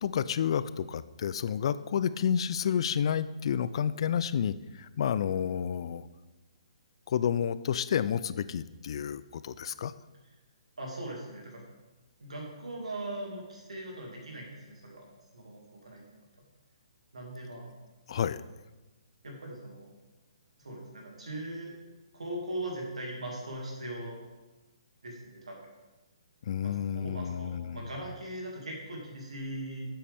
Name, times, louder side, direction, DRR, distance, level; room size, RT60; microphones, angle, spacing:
voice 1, 0.0-6.0 7.1-9.9 18.1-18.4 26.5-27.8, left 8 dB, 55° left, 16 dB, 0.3 m, -30 dB
voice 2, 10.8-11.6 12.2-15.1 15.3-16.0 17.1-17.7 19.2-19.9 20.6-21.7 22.1-24.2 25.0-25.7 26.6-29.8, right 1 dB, 85° right, -1 dB, 2.3 m, -40 dB
8.3 x 7.6 x 3.5 m, 1.1 s
hypercardioid pair, 140°, 3 cm